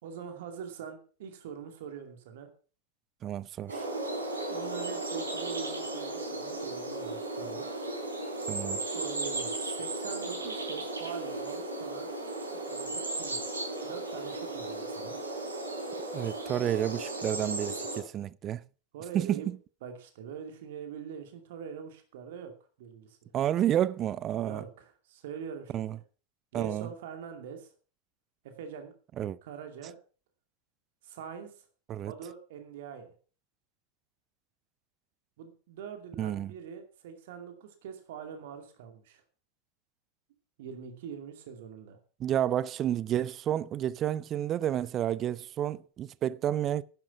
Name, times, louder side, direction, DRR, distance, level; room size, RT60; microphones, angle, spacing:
voice 1, 0.0-2.5 4.5-7.6 8.9-12.1 12.5-13.6 13.8-15.2 18.9-19.5 19.8-22.5 22.8-23.3 24.4-26.0 26.5-27.7 28.4-28.9 29.4-29.9 31.0-31.7 32.0-33.1 35.4-39.2 40.6-42.0, right 7 dB, 55° right, 2.5 m, -43 dB
voice 2, 3.2-3.8 8.5-8.8 16.1-18.6 19.1-19.6 23.3-24.6 25.7-26.0 26.5-26.9 29.2-29.4 31.9-32.1 36.2-36.5 42.2-46.8, right 11 dB, 30° right, 0.5 m, -30 dB
sound 1, 3.7-18.0, right 2 dB, 75° right, 4.1 m, -35 dB
10.5 x 10.5 x 5.9 m
figure-of-eight pair, 90°, 0 cm